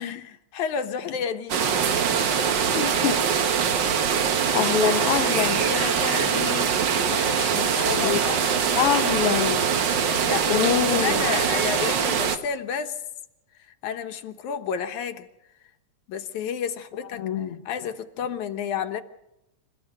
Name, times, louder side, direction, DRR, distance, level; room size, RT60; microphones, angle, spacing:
voice 1, 0.0-1.6 4.6-6.7 7.1-8.3 10.1-13.0 13.7-15.3 16.1-17.2 17.7-19.0, left 7 dB, 80° left, 8 dB, 2.5 m, -31 dB
sound 1, 1.5-12.4, right 7 dB, 55° right, 1.4 m, -23 dB
voice 2, 2.7-3.1 4.5-5.7 7.8-8.4 8.7-9.7 10.5-11.3 17.2-17.6, left 9 dB, 60° left, 7 dB, 1.8 m, -25 dB
29.0 x 14.0 x 6.6 m, 0.92 s
omnidirectional pair, 3.4 m